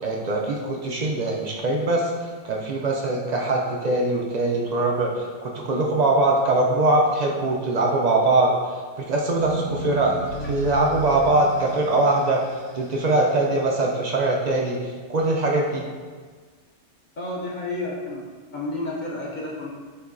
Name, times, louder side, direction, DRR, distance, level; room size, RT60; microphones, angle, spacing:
voice 1, 0.0-2.1 2.4-5.1 5.4-8.5 9.0-10.2 10.5-12.4 12.7-15.9, right 2 dB, 60° right, -1 dB, 0.4 m, -22 dB
sound 1, 9.4-13.7, right 1 dB, 90° left, 1.3 m, -35 dB
voice 2, 17.2-18.3 18.5-19.7, left 2 dB, 50° left, -4 dB, 0.6 m, -30 dB
6.5 x 2.7 x 2.5 m, 1.5 s
omnidirectional pair, 1.2 m